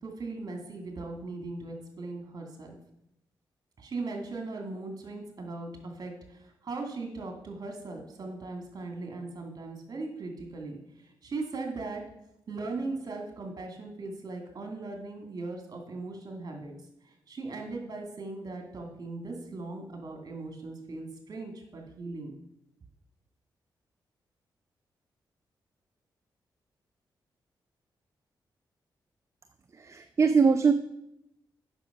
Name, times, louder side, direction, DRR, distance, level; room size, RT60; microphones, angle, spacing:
voice 1, 0.0-2.7 3.8-12.0 12.5-16.7 17.0-22.3, right 3 dB, 50° right, 3 dB, 2.5 m, -39 dB
voice 2, 29.8-30.7, right 5 dB, 35° right, 9 dB, 0.6 m, -22 dB
9.0 x 6.1 x 5.8 m, 0.82 s
cardioid pair, 80°, 8 cm